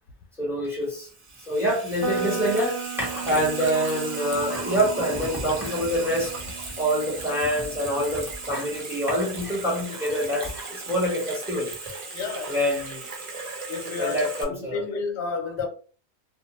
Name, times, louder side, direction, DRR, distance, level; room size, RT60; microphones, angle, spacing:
voice 1, 0.4-1.1 1.5-6.4 6.8-11.7 12.5-13.1 14.0-14.8, equal, 5° right, 0.9 m, -26 dB
Water tap faucet / Sink (filling or washing), 0.8-14.4, right 3 dB, 45° right, 0.4 m, -37 dB
sound 1, 2.0-9.9, right 5 dB, 80° right, 0.9 m, -37 dB
voice 2, 12.1-12.6 13.7-15.7, left 4 dB, 80° left, 0.9 m, -31 dB
2.4 x 2.0 x 2.9 m
omnidirectional pair, 1.1 m